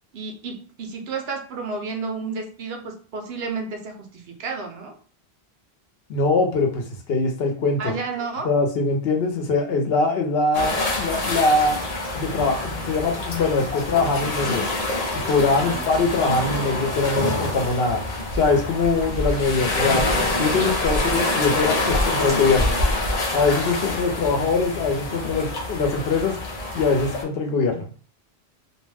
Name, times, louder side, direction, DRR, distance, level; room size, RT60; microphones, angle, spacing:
voice 1, 0.1-5.0 7.8-8.5 15.6-15.8 20.4-20.7, right 4 dB, 75° right, 3 dB, 0.9 m, -31 dB
voice 2, 6.1-8.0 8.4-11.8 12.1-14.6 15.3-18.0 18.3-20.1 20.4-22.7 23.3-26.4 26.7-28.0, left 3 dB, 70° left, 4 dB, 0.9 m, -22 dB
sound 1, 10.5-27.2, left 2 dB, 40° left, 0.7 m, -26 dB
2.5 x 2.1 x 3.3 m, 0.41 s
omnidirectional pair, 1.1 m